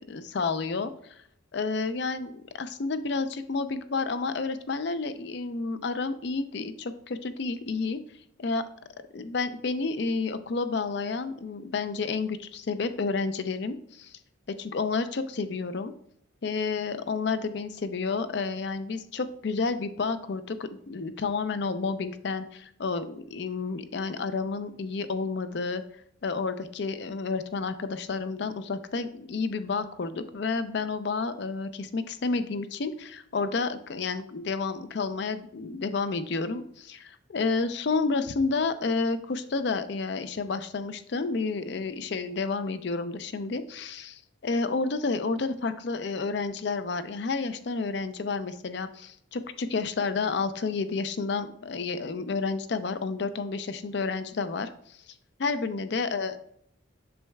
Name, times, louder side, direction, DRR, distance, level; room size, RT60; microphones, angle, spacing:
voice 1, 0.1-1.2 1.5-8.0 8.4-8.6 9.1-14.1 14.6-15.9 16.4-25.8 26.2-55.1 55.4-56.4, left 4 dB, 55° left, 11 dB, 0.4 m, -30 dB
7.7 x 6.3 x 2.3 m, 0.70 s
head